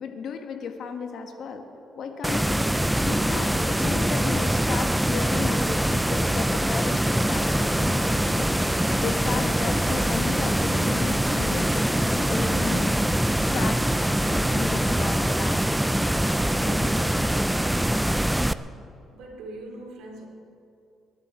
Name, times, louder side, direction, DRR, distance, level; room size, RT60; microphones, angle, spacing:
voice 1, 0.0-1.7 1.9-2.7 3.0-8.7 9.0-13.0 13.5-13.9 14.3-15.6 16.5-17.2, left 5 dB, 60° left, 5 dB, 1.5 m, -34 dB
sound 1, 2.2-18.5, right 1 dB, 5° right, 0.4 m, -23 dB
voice 2, 19.1-20.3, right 2 dB, 85° right, 1 dB, 2.9 m, -40 dB
21.5 x 12.0 x 4.5 m, 2.5 s
cardioid pair, 115°, 0 cm